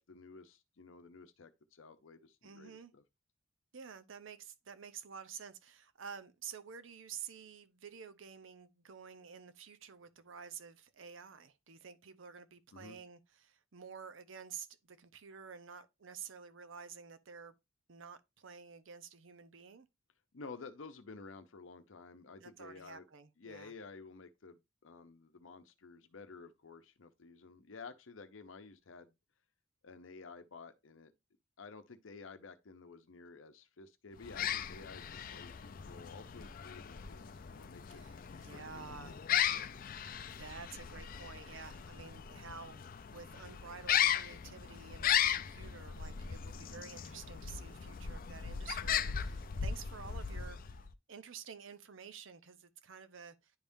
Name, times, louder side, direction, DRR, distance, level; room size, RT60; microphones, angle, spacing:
voice 1, 0.0-3.0 12.7-13.0 20.3-23.1 23.4-29.1 29.8-31.1 31.6-39.9, left 4 dB, 80° left, 0.7 m, -52 dB
voice 2, 2.4-2.9 3.7-17.5 17.9-19.9 22.4-23.7 37.9-39.2 40.2-50.8 51.1-53.5, right 6 dB, 75° right, 0.7 m, -50 dB
sound 1, 34.2-50.9, left 9 dB, 45° left, 0.4 m, -37 dB
10.5 x 3.5 x 2.6 m
head